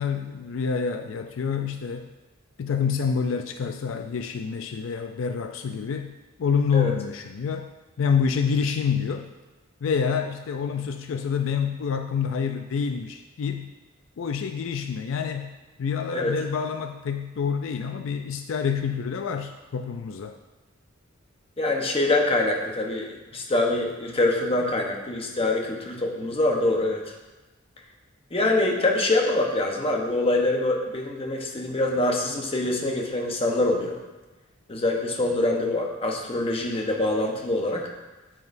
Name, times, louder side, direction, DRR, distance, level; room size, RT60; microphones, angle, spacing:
voice 1, 0.0-2.1 2.6-7.7 8.0-9.3 9.8-13.7 14.2-15.5 15.8-20.4, left 6 dB, 70° left, 7 dB, 0.4 m, -27 dB
voice 2, 21.6-27.1 28.3-34.0 34.7-37.9, left 2 dB, 30° left, 1 dB, 1.0 m, -24 dB
9.4 x 7.5 x 2.6 m, 1.1 s
head